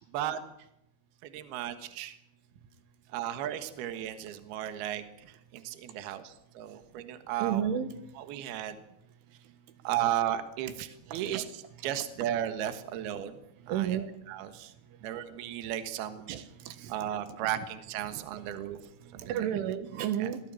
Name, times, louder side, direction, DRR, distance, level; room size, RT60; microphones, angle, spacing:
voice 1, 0.1-0.4 1.2-2.2 3.1-7.6 8.2-8.8 9.8-13.4 13.7-14.0 14.3-14.7 15.0-16.3 16.9-18.8 19.1-19.5 20.2-20.3, right 11 dB, 65° right, 9 dB, 3.2 m, -35 dB
voice 2, 7.4-7.9 11.1-11.5 13.7-14.1 16.3-17.1 17.4-17.5 18.1-18.2 19.0-20.4, right 10 dB, 85° right, 10 dB, 4.0 m, -32 dB
25.0 x 17.0 x 7.8 m, 0.83 s
omnidirectional pair, 5.4 m